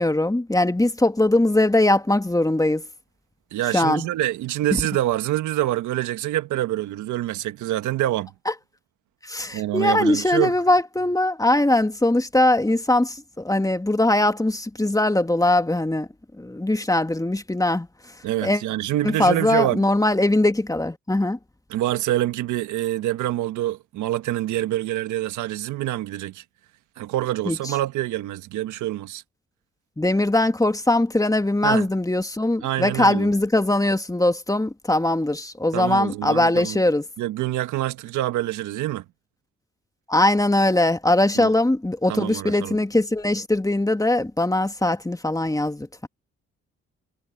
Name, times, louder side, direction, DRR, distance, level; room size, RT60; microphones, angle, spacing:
voice 1, 0.0-2.9 3.7-4.1 4.7-4.8 8.5-8.6 9.2-16.1 16.3-18.2 18.4-18.6 19.0-21.4 27.5-27.8 30.0-37.1 40.1-46.1, left 1 dB, 10° left, 2.1 m, -21 dB
voice 2, 3.5-8.3 9.5-10.5 18.2-19.8 21.7-26.4 27.0-29.2 31.6-31.9 32.6-33.3 35.7-36.8 37.2-39.0 41.3-41.5 42.1-42.8, right 14 dB, 80° right, 1.6 m, -26 dB
supercardioid pair, 50°, 29 cm